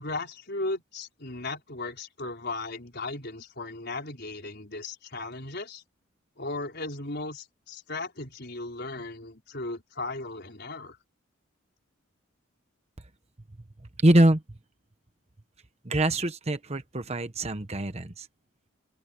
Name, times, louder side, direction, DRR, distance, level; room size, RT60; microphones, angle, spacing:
voice 1, 0.0-5.8 6.4-11.0, left 2 dB, 55° left, 4.7 m, -36 dB
voice 2, 14.0-14.4 15.8-18.3, right 1 dB, 30° right, 1.2 m, -23 dB
open air
head